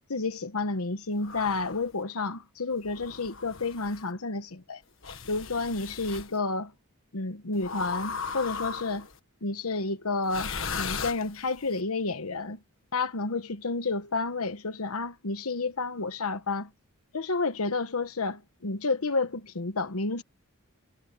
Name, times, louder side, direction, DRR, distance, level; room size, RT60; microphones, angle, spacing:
voice 1, 0.1-4.8 5.3-6.7 7.1-9.1 9.4-12.6 12.9-16.7 17.1-20.2, left 3 dB, 85° left, 1.2 m, -30 dB
sound 1, 1.2-1.9 2.8-4.0 5.0-6.3 7.6-9.1 10.2-11.7, left 5 dB, 65° left, 1.5 m, -37 dB
head